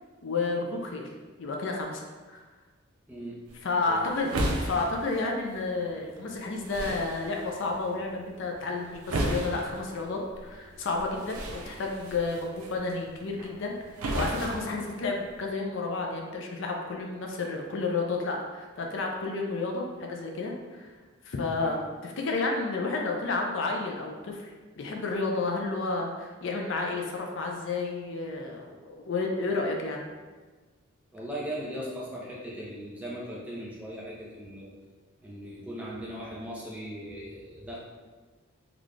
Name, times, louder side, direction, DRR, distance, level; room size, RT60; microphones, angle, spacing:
voice 1, 0.2-1.1 1.4-2.4 3.6-4.4 4.6-20.9 21.2-24.5 24.8-30.0, left 3 dB, 60° left, 1 dB, 0.4 m, -31 dB
sound 1, 3.5-15.5, right 1 dB, 90° right, 0.5 m, -36 dB
voice 2, 31.1-34.7 35.2-37.8, equal, 5° right, -6 dB, 0.6 m, -38 dB
3.9 x 2.3 x 3.2 m, 1.3 s
head